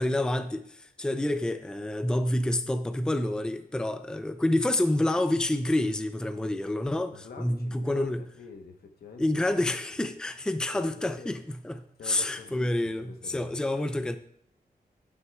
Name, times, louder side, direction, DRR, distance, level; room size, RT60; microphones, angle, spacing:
voice 1, 0.0-8.2 9.2-14.2, left 1 dB, 5° left, 0.4 m, -28 dB
voice 2, 7.1-9.2 9.5-9.6 10.7-11.3 12.0-13.6, left 4 dB, 80° left, 1.1 m, -46 dB
11.0 x 9.4 x 2.3 m
wide cardioid pair, 175°, 16 cm